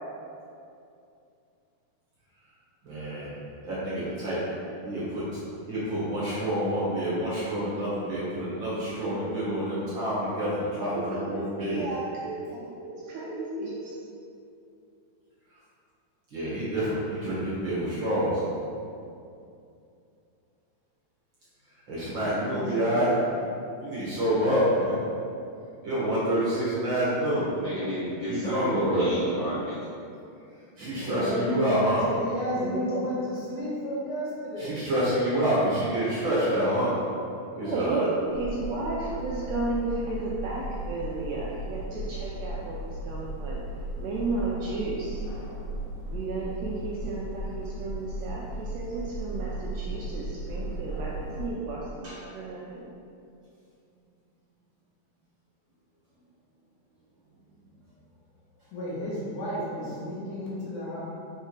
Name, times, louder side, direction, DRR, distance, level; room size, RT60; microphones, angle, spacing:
voice 1, 2.8-3.3 3.6-4.4 4.8-5.2 5.7-11.8 16.3-18.4 21.9-23.1 23.8-25.0 25.8-27.4 28.3-29.1 30.8-32.0 34.6-36.9 37.6-38.1 52.0-52.2, equal, 50° right, -9 dB, 1.6 m, -27 dB
voice 2, 11.0-14.0 32.6-33.1 37.6-42.8 43.1-43.6 44.0-45.2 46.1-52.9 59.8-59.9, right 3 dB, 80° right, -5 dB, 1.6 m, -33 dB
voice 3, 22.1-23.2 31.1-34.8 58.7-61.0, left 1 dB, 75° left, -7 dB, 3.0 m, -33 dB
voice 4, 27.5-29.7 31.0-31.3, equal, 90° left, -10 dB, 1.0 m, -32 dB
sound 1, 38.3-51.5, right 1 dB, 45° left, 1.7 m, -36 dB
5.8 x 4.5 x 4.6 m, 2.6 s
omnidirectional pair, 3.6 m